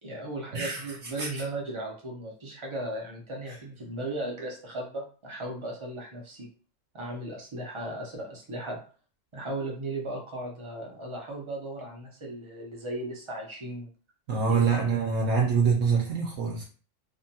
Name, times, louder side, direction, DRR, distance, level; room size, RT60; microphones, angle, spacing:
voice 1, 0.0-6.5 6.9-8.8 9.3-13.9 14.5-14.7, right 1 dB, 45° right, -1 dB, 0.4 m, -36 dB
voice 2, 0.5-1.3 3.5-3.6 14.3-16.6, right 5 dB, 75° right, -1 dB, 0.9 m, -25 dB
2.8 x 2.1 x 2.7 m, 0.39 s
omnidirectional pair, 1.4 m